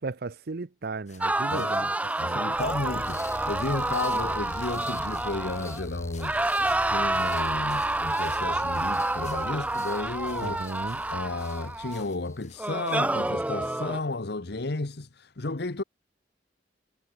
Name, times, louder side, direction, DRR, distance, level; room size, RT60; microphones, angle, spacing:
voice 1, 0.0-2.4 10.4-11.0, right 3 dB, 60° right, 0.7 m, -36 dB
sound 1, 1.1-13.0, left 8 dB, 40° left, 4.5 m, -56 dB
sound 2, 1.2-5.9 6.2-12.0 12.6-14.0, right 2 dB, 10° right, 0.5 m, -28 dB
voice 2, 2.2-6.4 6.9-10.6 11.1-15.8, left 2 dB, 60° left, 1.1 m, -33 dB
sound 3, 2.5-12.5, left 1 dB, 15° left, 4.9 m, -43 dB
head